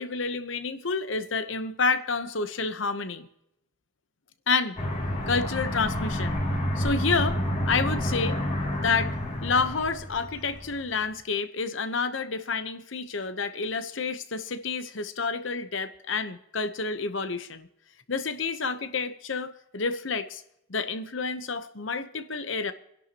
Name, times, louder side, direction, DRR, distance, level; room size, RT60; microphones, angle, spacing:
voice 1, 0.0-3.3 4.5-4.8 5.3-6.4 6.8-7.4 7.6-8.4 8.8-9.2 9.4-17.7 18.1-20.4 20.7-22.7, left 4 dB, 70° left, 11 dB, 1.0 m, -29 dB
Aircraft, 4.8-10.9, equal, 35° left, 2.8 m, -29 dB
28.5 x 11.5 x 3.0 m, 0.81 s
head